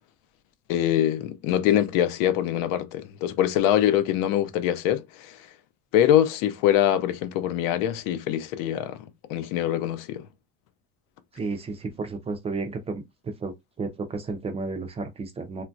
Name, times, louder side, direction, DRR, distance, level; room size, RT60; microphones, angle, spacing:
voice 1, 0.7-5.4 5.9-9.0 9.3-10.3, left 11 dB, 80° left, 0.6 m, -23 dB
voice 2, 11.3-13.0 13.4-13.5 13.8-15.6, right 3 dB, 20° right, 0.3 m, -32 dB
3.0 x 2.3 x 2.5 m
cardioid pair, 150°, 32 cm